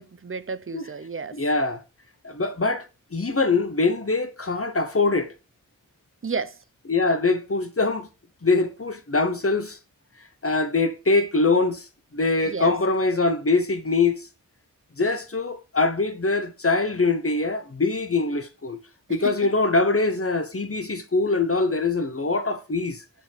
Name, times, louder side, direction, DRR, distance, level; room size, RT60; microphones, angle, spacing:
voice 1, 0.0-1.4 6.2-6.6 12.5-12.7 19.1-19.5, right 5 dB, 40° right, 0.6 m, -32 dB
voice 2, 1.3-1.8 2.2-5.3 6.9-8.1 8.4-9.8 10.4-11.8 12.1-14.2 15.0-18.8 19.1-23.0, left 3 dB, 40° left, 1.0 m, -23 dB
6.7 x 4.5 x 4.5 m
wide cardioid pair, 40°, 33 cm